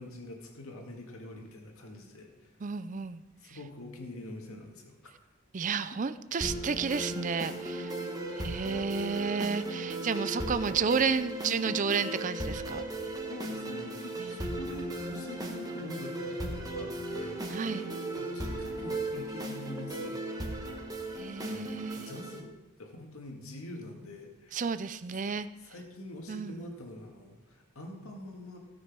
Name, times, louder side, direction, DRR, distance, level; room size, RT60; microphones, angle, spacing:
voice 1, 0.0-2.5 3.4-4.9 8.3-8.5 13.3-17.3 18.1-20.7 21.5-22.4 22.8-24.6 25.1-25.2 25.6-28.6, left 1 dB, 85° left, 2 dB, 2.0 m, -45 dB
voice 2, 2.6-3.2 5.5-7.9 8.4-12.8 14.2-14.4 17.5-17.9 21.2-22.1 24.5-25.5 26.3-26.7, right 5 dB, 35° right, 12 dB, 0.4 m, -31 dB
sound 1, 6.4-22.4, right 1 dB, 15° right, 1.3 m, -36 dB
17.0 x 6.4 x 6.0 m, 1.0 s
head